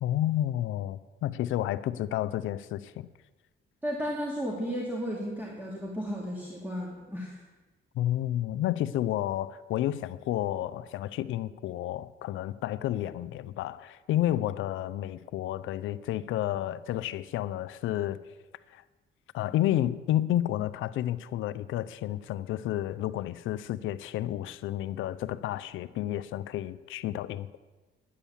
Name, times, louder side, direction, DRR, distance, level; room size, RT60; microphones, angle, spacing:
voice 1, 0.0-3.1 7.9-18.2 18.7-18.8 19.3-27.6, left 13 dB, 85° left, 0.6 m, -31 dB
voice 2, 3.8-7.4, equal, 10° right, 2.5 m, -34 dB
10.0 x 9.9 x 7.2 m
cardioid pair, 90°, 20 cm